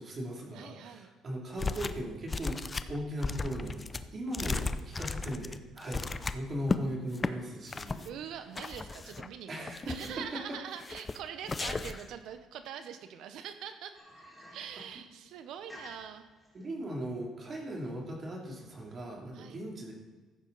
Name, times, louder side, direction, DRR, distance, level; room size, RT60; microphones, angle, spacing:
voice 1, 0.0-2.6 2.9-3.9 4.1-6.0 6.3-8.0 9.5-9.9 10.3-10.6 16.5-19.9, equal, 30° right, -1 dB, 2.7 m, -38 dB
voice 2, 0.5-1.1 8.0-14.0 14.5-16.3 19.3-19.6, right 8 dB, 65° right, 9 dB, 0.8 m, -43 dB
sound 1, 1.6-2.0 2.3-6.8 7.1-7.3 7.7-8.1 8.6-9.3 9.7-10.3 10.8-11.2 11.5-12.1, left 3 dB, 20° left, 0.4 m, -35 dB
sound 2, 13.9-19.1, left 1 dB, ahead, 3.3 m, -54 dB
14.5 x 9.6 x 4.0 m, 1.3 s
cardioid pair, 155°, 0 cm